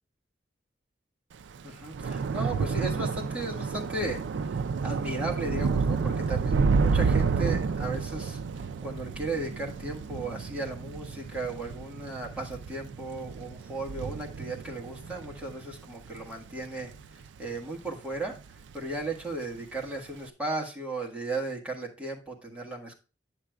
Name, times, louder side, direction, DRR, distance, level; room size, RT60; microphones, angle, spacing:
Thunder / Rain, 1.4-18.0 18.3-18.8 19.0-19.2, right 5 dB, 85° right, 0.4 m, -30 dB
voice 1, 1.6-4.5 4.8-16.9 17.4-18.4 18.7-23.0, right 2 dB, 5° right, -3 dB, 1.5 m, -35 dB
9.7 x 7.5 x 2.3 m, 0.33 s
head